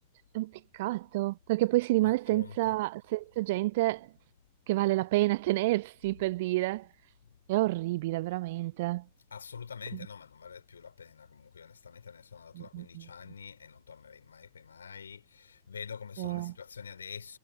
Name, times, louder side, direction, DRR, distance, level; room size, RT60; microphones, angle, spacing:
voice 1, 0.3-4.1 4.7-6.9 7.5-9.0 12.5-13.1 16.2-16.5, right 19 dB, 50° right, 0.3 m, -29 dB
voice 2, 2.0-2.7 9.3-17.4, left 6 dB, 70° left, 4.7 m, -46 dB
figure-of-eight pair, 90°, 0 cm